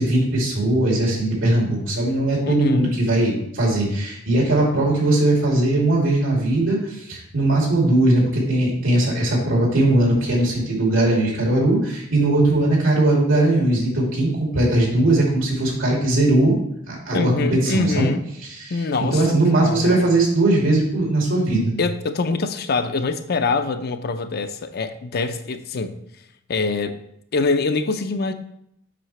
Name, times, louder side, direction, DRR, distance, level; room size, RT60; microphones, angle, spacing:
voice 1, 0.0-16.6 16.9-18.1 18.5-21.7, right 2 dB, 85° right, -2 dB, 2.8 m, -19 dB
voice 2, 2.4-3.0 17.1-18.2 18.7-20.1 21.8-26.0 26.5-27.0 27.3-28.3, left 3 dB, 55° left, 9 dB, 0.5 m, -24 dB
7.6 x 5.6 x 3.2 m, 0.74 s
head